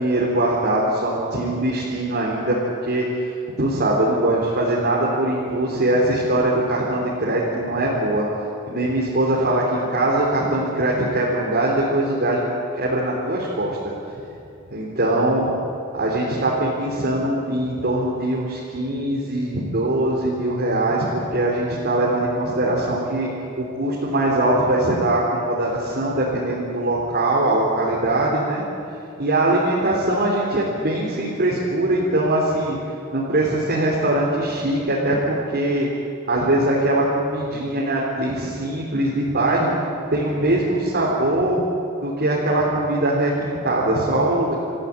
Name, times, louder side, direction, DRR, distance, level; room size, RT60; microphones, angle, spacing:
voice 1, 0.0-3.1 3.6-8.3 8.7-12.4 12.8-13.8 14.7-15.5 15.9-23.3 23.6-28.6 29.2-32.8 33.1-35.9 36.3-39.7 40.1-41.6 42.0-44.5, right 1 dB, 50° right, -4 dB, 3.7 m, -21 dB
28.0 x 15.5 x 8.6 m, 2.6 s
head